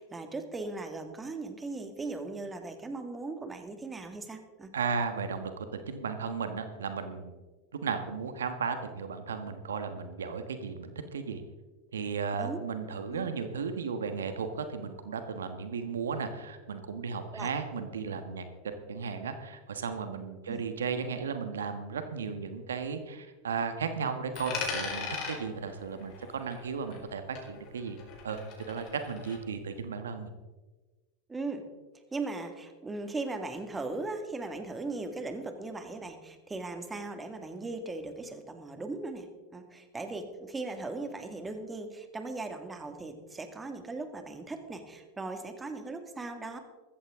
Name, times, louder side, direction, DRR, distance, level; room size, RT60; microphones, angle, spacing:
voice 1, 0.0-4.7 12.4-12.6 13.1-13.3 17.3-17.5 20.5-20.6 31.3-31.6 32.1-39.3 39.5-46.6, right 3 dB, 15° right, 7 dB, 1.9 m, -38 dB
voice 2, 4.7-5.5 5.9-7.3 7.7-11.4 11.9-28.0 28.2-28.4 28.7-30.3, right 5 dB, 85° right, 8 dB, 1.3 m, -35 dB
Coin (dropping), 24.3-27.1 27.4-29.4, left 5 dB, 50° left, 4.4 m, -39 dB
15.0 x 14.0 x 3.7 m, 1.2 s
hypercardioid pair, 95°, 0 cm